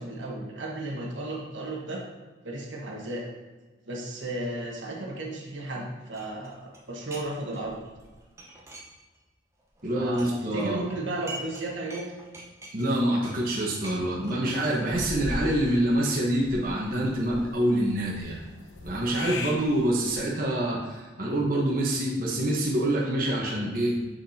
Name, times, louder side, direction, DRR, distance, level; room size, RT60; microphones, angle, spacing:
voice 1, 0.0-2.0 2.4-3.3 3.9-7.8 9.9-12.1, right 2 dB, 70° right, -1 dB, 1.3 m, -34 dB
sound 1, 6.1-7.3 7.5-9.3 9.6-11.6 11.9-15.7, right 1 dB, 15° right, 0.9 m, -45 dB
voice 2, 9.8-10.8 12.7-18.4 18.8-23.9, right 1 dB, 45° right, -4 dB, 1.2 m, -26 dB
sound 2, 14.9-20.1, left 2 dB, 70° left, 1.0 m, -39 dB
7.6 x 6.5 x 2.8 m, 1.3 s
head